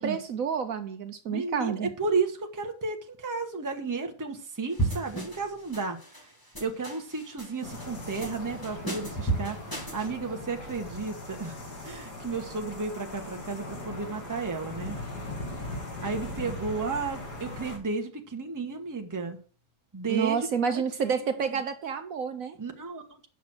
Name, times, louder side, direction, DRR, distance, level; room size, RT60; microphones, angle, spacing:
voice 1, 0.0-1.9 20.1-22.6, right 6 dB, 65° right, 8 dB, 1.1 m, -29 dB
voice 2, 1.3-6.3 6.6-9.6 9.9-11.6 11.8-15.0 16.0-19.4 19.9-21.4 22.6-23.0, right 4 dB, 15° right, 4 dB, 1.0 m, -33 dB
sound 1, 4.8-5.5 5.7-6.2 6.6-7.5 7.8-8.3 8.6-10.1, right 2 dB, 15° left, 1.7 m, -32 dB
sound 2, 7.6-17.8, left 2 dB, 85° left, 3.0 m, -39 dB
8.6 x 6.0 x 6.2 m, 0.42 s
omnidirectional pair, 1.7 m